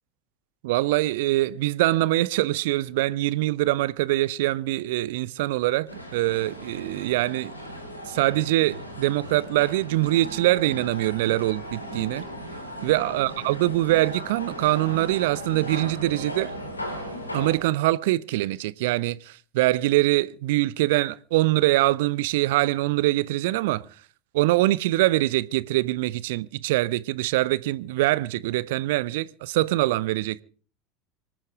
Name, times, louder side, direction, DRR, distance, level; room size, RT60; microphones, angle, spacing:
voice 1, 0.6-7.5 8.1-12.2 12.8-16.5 17.3-23.8 24.3-30.4, right 17 dB, 60° right, 0.6 m, -23 dB
sound 1, 5.9-17.6, equal, 85° left, 3.3 m, -37 dB
25.5 x 9.0 x 4.7 m
figure-of-eight pair, 75°, 0 cm